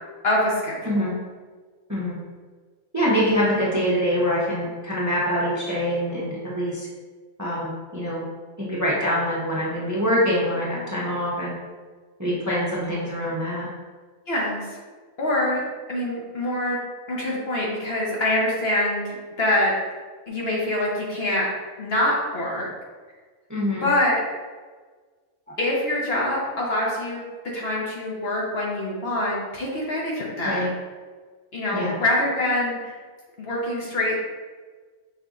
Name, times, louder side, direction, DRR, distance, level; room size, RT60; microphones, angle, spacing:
voice 1, 0.2-0.8 14.3-14.6 15.2-15.6 15.9-16.8 17.1-19.7 20.3-21.5 21.8-22.7 23.8-24.2 25.6-27.2 27.5-30.6 31.5-32.9 33.4-34.2, left 1 dB, 50° left, -4 dB, 1.1 m, -24 dB
voice 2, 2.9-6.9 7.4-8.2 8.7-11.5 12.2-13.7 23.5-23.8 30.4-30.7 31.7-32.0, equal, 15° right, -6 dB, 0.7 m, -24 dB
5.5 x 2.7 x 3.6 m, 1.4 s
omnidirectional pair, 1.4 m